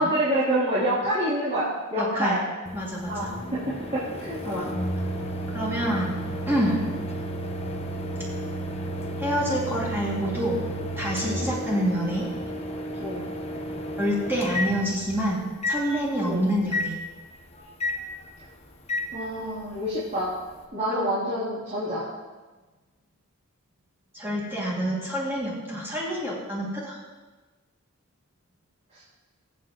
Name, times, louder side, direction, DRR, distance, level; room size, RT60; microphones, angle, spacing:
voice 1, 0.0-2.4 3.1-4.7 11.3-11.5 13.0-13.2 16.2-16.4 19.1-20.3 20.7-22.1 28.9-29.0, right 1 dB, 35° right, -11 dB, 3.2 m, -27 dB
voice 2, 2.0-2.4 2.7-3.3 4.4-4.7 5.5-6.2 6.5-6.9 9.2-10.6 11.0-12.3 14.0-16.9 20.9-21.0 24.1-27.0, equal, 10° right, -6 dB, 2.4 m, -27 dB
Microwave oven, 2.7-15.2 15.6-15.8 16.7-16.9 17.8-18.0 18.9-19.1, equal, 30° left, 1.1 m, -32 dB
22.0 x 8.1 x 3.1 m, 1.3 s
head